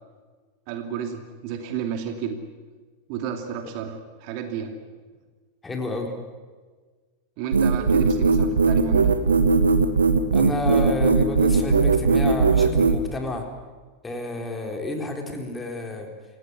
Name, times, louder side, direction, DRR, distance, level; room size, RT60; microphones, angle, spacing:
voice 1, 0.7-2.4 3.1-4.7 7.4-9.1, right 8 dB, 45° right, 5 dB, 2.7 m, -31 dB
voice 2, 5.6-6.1 10.3-13.5 14.0-16.1, left 2 dB, 10° left, 3 dB, 4.2 m, -30 dB
sound 1, 7.5-13.0, right 4 dB, 75° right, 1.6 m, -18 dB
28.0 x 17.5 x 9.7 m, 1.4 s
figure-of-eight pair, 90°, 0 cm